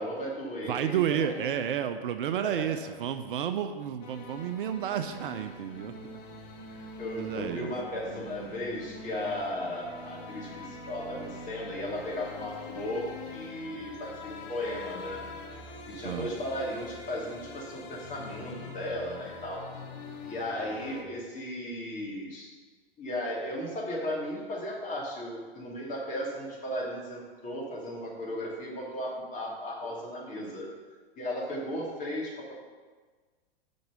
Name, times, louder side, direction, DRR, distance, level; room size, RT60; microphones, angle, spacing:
voice 1, 0.0-1.6 2.4-2.5 6.7-15.2 15.9-19.6 20.3-22.5 23.0-30.7 31.2-32.5, left 1 dB, 25° left, -3 dB, 2.3 m, -36 dB
voice 2, 0.7-5.9 7.2-7.7 16.0-16.3, right 9 dB, 60° right, 9 dB, 0.5 m, -31 dB
sound 1, 4.0-21.0, left 3 dB, 45° left, 1.0 m, -44 dB
5.8 x 5.3 x 6.5 m, 1.4 s
figure-of-eight pair, 105°, 31 cm